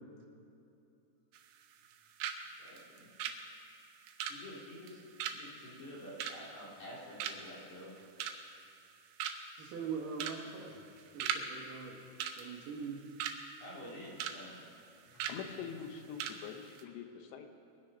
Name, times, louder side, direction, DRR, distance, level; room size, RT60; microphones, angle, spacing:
sound 1, 1.3-1.9 2.2-2.4 2.7-6.9 7.2-7.6 8.0-8.6 8.9-9.0 9.2-9.6 10.1-10.4 10.7-11.4 11.7-11.9 12.2-13.4 13.8-14.4 14.6-14.8 15.2-15.4 15.8-15.9 16.2-16.4 16.7-16.8, right 9 dB, 85° right, 3.0 m, -39 dB
voice 1, 2.6-3.1 4.3-7.9 13.6-14.6, equal, 45° left, -6 dB, 4.4 m, -49 dB
voice 2, 9.6-10.8 11.1-12.0 12.3-13.0, right 5 dB, 55° right, -3 dB, 3.1 m, -42 dB
voice 3, 15.1-17.5, left 7 dB, 85° left, 6 dB, 3.3 m, -45 dB
22.5 x 9.8 x 5.6 m, 2.6 s
omnidirectional pair, 4.9 m